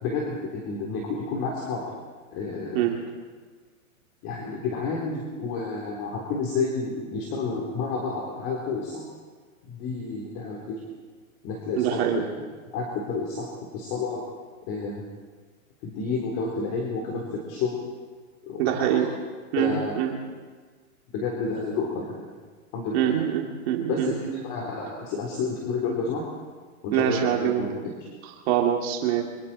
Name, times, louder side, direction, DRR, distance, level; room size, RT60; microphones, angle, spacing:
voice 1, 0.0-1.8 2.3-2.9 4.2-9.0 9.7-10.8 11.4-12.4 12.7-13.5 13.7-14.2 14.7-15.0 15.8-17.8 18.4-19.0 19.6-20.0 21.1-22.1 22.7-23.1 23.9-26.2 26.8-28.1, left 4 dB, 35° left, -1 dB, 3.9 m, -30 dB
voice 2, 11.8-12.2 18.6-19.1 19.5-20.2 22.9-24.4 26.9-27.7 28.5-29.2, right 10 dB, 45° right, 1 dB, 2.7 m, -24 dB
25.5 x 25.0 x 4.4 m, 1.5 s
hypercardioid pair, 140°, 43 cm